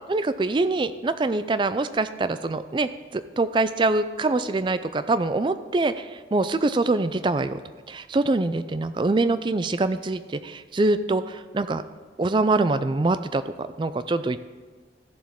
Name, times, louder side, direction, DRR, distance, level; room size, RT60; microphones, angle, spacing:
voice 1, 0.1-7.6 7.9-11.8 12.2-14.4, right 2 dB, 25° right, 12 dB, 0.3 m, -24 dB
14.0 x 7.2 x 3.6 m, 1.4 s
head